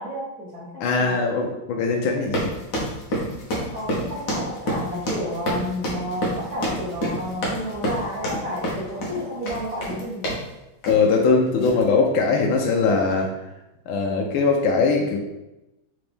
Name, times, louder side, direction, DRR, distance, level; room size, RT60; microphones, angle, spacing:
voice 1, 0.0-1.2 3.7-10.2, equal, 55° right, -9 dB, 1.4 m, -31 dB
voice 2, 0.8-2.5 10.9-13.3 13.9-15.2, left 4 dB, 80° left, 1 dB, 1.4 m, -21 dB
sound 1, 2.2-10.5 10.8-11.2 11.6-11.8, equal, 60° left, 1.4 m, -28 dB
3.9 x 3.5 x 3.4 m, 0.95 s
omnidirectional pair, 2.3 m